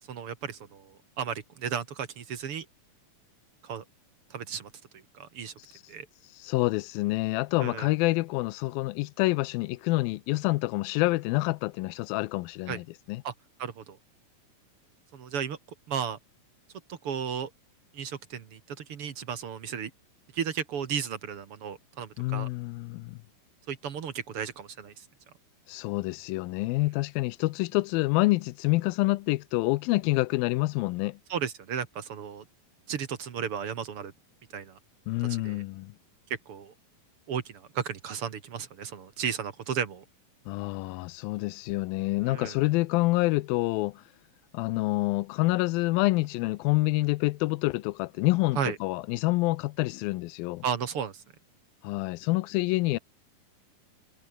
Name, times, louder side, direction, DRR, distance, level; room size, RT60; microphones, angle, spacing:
voice 1, 0.1-2.7 3.6-3.8 4.3-5.5 5.9-6.1 7.6-7.9 12.7-12.8 13.2-13.3 13.6-14.0 15.1-15.6 15.9-16.2 16.9-17.5 17.9-19.9 20.3-22.5 23.7-25.0 31.3-32.4 32.9-34.1 34.5-34.8 35.3-35.6 36.5-36.7 37.3-40.0 42.3-42.5 48.6-48.8 50.6-51.2, right 7 dB, 50° right, 2.0 m, -34 dB
voice 2, 6.4-13.2 22.2-23.2 25.7-31.2 35.1-35.9 40.5-44.0 44.5-50.6 51.8-53.0, left 21 dB, 85° left, 2.4 m, -27 dB
omnidirectional pair, 4.1 m